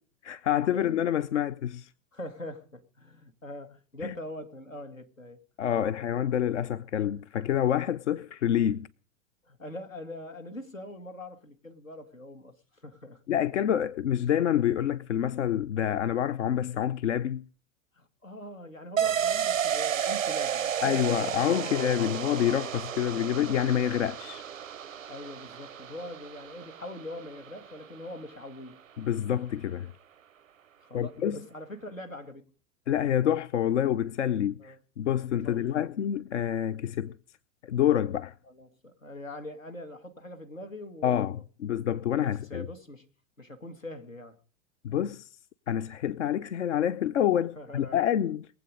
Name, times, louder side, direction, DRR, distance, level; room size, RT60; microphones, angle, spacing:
voice 1, 0.2-1.9 4.0-4.1 5.6-8.9 13.3-17.4 20.8-24.4 29.0-29.9 30.9-31.4 32.9-37.2 37.6-38.3 41.0-42.7 44.8-45.3 45.7-48.5, left 10 dB, 65° left, 0.6 m, -27 dB
voice 2, 2.1-5.4 9.4-13.2 18.0-21.7 22.0-22.1 25.1-28.8 30.8-32.4 34.6-34.8 35.4-35.8 38.5-41.4 42.2-43.1 43.4-44.4 47.6-48.0, left 1 dB, 85° left, 1.9 m, -43 dB
sound 1, 19.0-28.4 28.7-28.8, right 9 dB, 85° right, 0.6 m, -32 dB
22.0 x 8.0 x 5.1 m
figure-of-eight pair, 95°, 39 cm